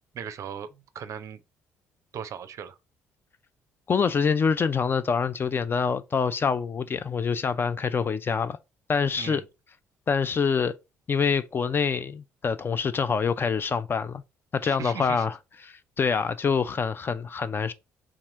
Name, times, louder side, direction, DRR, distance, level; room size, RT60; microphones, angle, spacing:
voice 1, 0.1-1.4 2.1-2.8 9.2-9.4 14.6-15.2, right 8 dB, 45° right, 0.5 m, -38 dB
voice 2, 3.9-8.6 8.9-9.4 10.1-10.7 11.1-14.2 14.5-15.4 15.6-17.7, left 6 dB, 30° left, 0.4 m, -25 dB
4.1 x 2.5 x 4.6 m
figure-of-eight pair, 45°, 7 cm